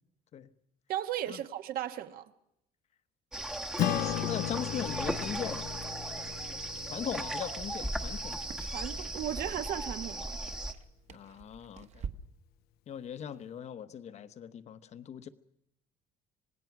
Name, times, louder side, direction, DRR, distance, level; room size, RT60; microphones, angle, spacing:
voice 1, 0.9-2.3 8.6-10.4, right 11 dB, 60° right, 1.4 m, -36 dB
sound 1, 3.3-10.7, right 1 dB, 5° right, 1.0 m, -37 dB
Acoustic guitar / Strum, 3.8-8.5, left 14 dB, 70° left, 0.9 m, -36 dB
voice 2, 3.8-5.7 6.8-8.4 11.1-12.1 12.9-15.3, left 8 dB, 40° left, 1.0 m, -40 dB
sound 2, 6.6-12.1, right 6 dB, 40° right, 1.2 m, -49 dB
26.5 x 19.0 x 6.0 m
cardioid pair, 155°, 17 cm